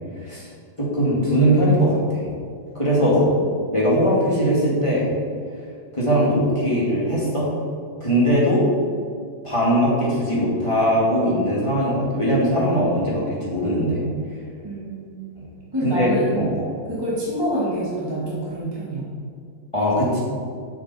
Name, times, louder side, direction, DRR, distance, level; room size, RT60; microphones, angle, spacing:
voice 1, 0.8-2.3 2.7-3.2 3.7-5.1 5.9-7.5 8.0-8.7 9.4-14.0 15.8-16.1 16.4-16.7 19.7-20.2, equal, 15° left, -7 dB, 2.0 m, -20 dB
voice 2, 3.0-3.4 14.6-16.5 16.9-19.1, right 1 dB, 15° right, -7 dB, 1.2 m, -27 dB
8.3 x 5.8 x 4.1 m, 2.3 s
omnidirectional pair, 2.2 m